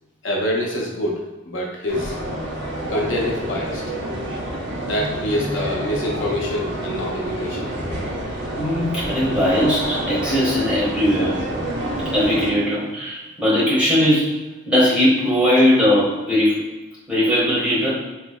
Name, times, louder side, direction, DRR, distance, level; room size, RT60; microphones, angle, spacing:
voice 1, 0.2-2.1 2.9-3.8 4.8-7.7, left 1 dB, 75° left, -2 dB, 0.7 m, -25 dB
sound 1, 1.9-12.5, right 1 dB, 70° right, 1.2 m, -28 dB
voice 2, 8.5-11.4 12.1-14.4 14.7-16.6 17.1-17.9, left 1 dB, 5° right, -9 dB, 1.3 m, -19 dB
3.7 x 3.1 x 2.2 m, 1.1 s
head